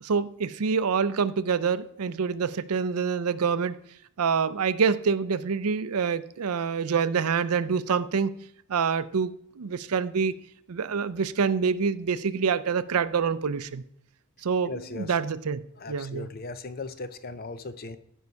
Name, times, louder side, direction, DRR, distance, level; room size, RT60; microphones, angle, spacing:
voice 1, 0.0-3.8 4.2-8.3 8.7-10.3 10.7-13.8 14.4-16.3, right 6 dB, 85° right, 15 dB, 0.5 m, -26 dB
voice 2, 14.6-15.2 15.8-18.0, left 3 dB, 40° left, 12 dB, 0.6 m, -38 dB
15.0 x 5.4 x 4.6 m, 0.71 s
head